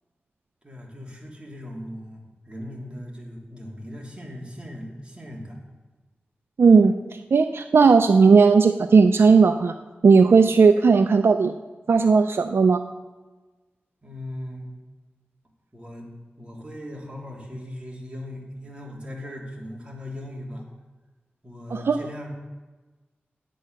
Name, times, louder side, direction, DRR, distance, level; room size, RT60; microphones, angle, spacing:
voice 1, 0.6-5.6 14.0-14.7 15.7-16.1 16.4-20.6 21.4-22.3, left 1 dB, 25° right, -2 dB, 2.8 m, -38 dB
voice 2, 6.6-7.0 7.3-9.7 10.0-11.5 11.9-12.8 21.7-22.0, right 5 dB, 75° right, 8 dB, 0.4 m, -16 dB
10.0 x 8.5 x 6.4 m, 1.2 s
wide cardioid pair, 100°, 4 cm